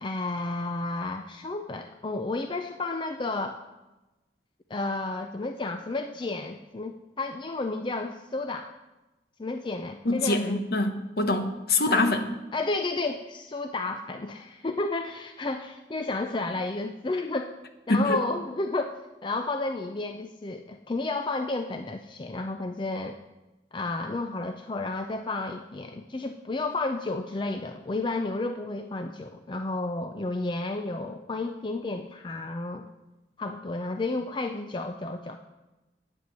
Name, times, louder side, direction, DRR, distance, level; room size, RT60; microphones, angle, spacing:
voice 1, 0.0-3.6 4.7-8.7 9.4-10.6 11.9-12.1 12.5-17.5 17.9-18.9 19.2-23.2 23.7-32.9 33.4-35.4, left 2 dB, 25° left, 6 dB, 0.4 m, -32 dB
voice 2, 10.0-12.3 17.9-18.2, left 2 dB, 60° left, 7 dB, 1.0 m, -24 dB
9.5 x 7.9 x 6.8 m, 1.1 s
head